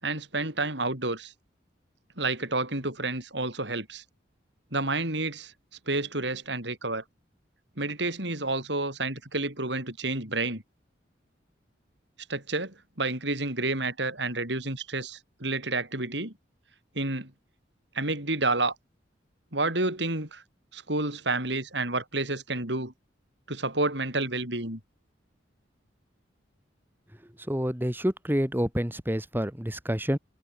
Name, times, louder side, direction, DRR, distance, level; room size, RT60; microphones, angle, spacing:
voice 1, 0.0-1.3 2.2-4.0 4.7-5.5 5.9-7.0 7.8-10.6 12.3-16.3 17.0-17.3 17.9-18.7 19.5-20.4 20.7-22.9 23.5-24.8, right 2 dB, 65° right, 7.3 m, -30 dB
voice 2, 27.5-30.2, equal, 10° right, 2.6 m, -28 dB
head